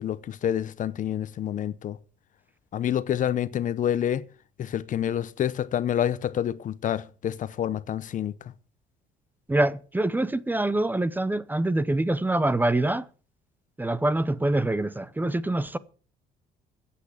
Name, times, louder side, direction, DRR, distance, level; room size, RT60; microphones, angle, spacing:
voice 1, 0.0-2.0 2.7-4.2 4.6-8.3, left 10 dB, 50° left, 0.8 m, -28 dB
voice 2, 9.5-13.0 13.8-15.8, right 2 dB, 10° right, 0.7 m, -25 dB
14.5 x 8.5 x 6.9 m
cardioid pair, 110°, 17 cm